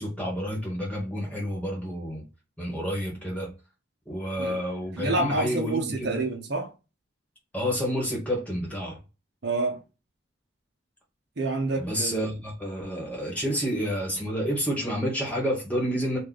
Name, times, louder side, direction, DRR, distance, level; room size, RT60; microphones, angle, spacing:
voice 1, 0.0-2.2 2.6-3.5 4.1-6.2 7.5-9.0 11.8-16.2, equal, 10° left, 1.4 m, -29 dB
voice 2, 5.0-6.7 9.4-9.8 11.4-12.3, right 2 dB, 60° right, 0.8 m, -28 dB
3.3 x 2.5 x 4.0 m
head